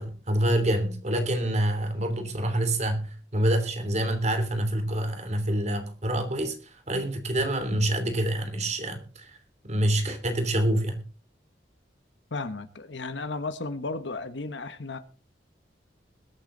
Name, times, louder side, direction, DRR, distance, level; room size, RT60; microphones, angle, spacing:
voice 1, 0.0-9.4 9.6-11.0, right 1 dB, 40° right, 3.1 m, -27 dB
voice 2, 12.3-15.0, left 3 dB, 85° left, 1.2 m, -34 dB
22.0 x 8.7 x 3.9 m
head